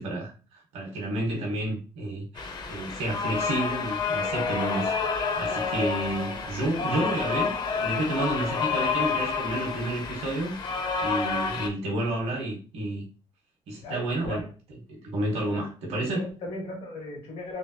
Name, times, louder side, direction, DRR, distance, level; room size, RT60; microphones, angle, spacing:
voice 1, 0.0-4.9 5.4-7.5 7.8-10.6 11.0-13.0 13.7-14.4 14.9-16.3, right 1 dB, 75° right, 0 dB, 1.0 m, -30 dB
sound 1, 2.4-11.7, left 5 dB, 40° left, 0.6 m, -29 dB
voice 2, 13.8-14.5 15.5-17.6, left 2 dB, 75° left, 0 dB, 1.3 m, -38 dB
3.2 x 2.4 x 2.7 m, 0.35 s
cardioid pair, 115°, 11 cm